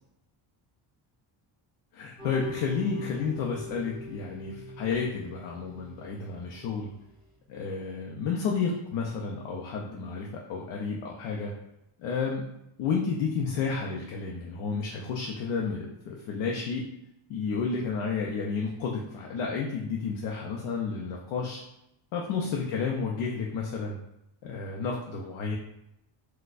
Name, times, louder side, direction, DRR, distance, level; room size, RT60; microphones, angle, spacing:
voice 1, 1.9-6.9 7.5-11.5 12.0-12.4 12.8-16.8 17.3-21.6 22.1-24.0 24.4-25.6, left 5 dB, 85° left, -1 dB, 0.6 m, -31 dB
sound 1, 2.2-7.0, left 1 dB, 10° left, 1.1 m, -43 dB
4.1 x 2.2 x 2.4 m, 0.84 s
cardioid pair, 155°, 47 cm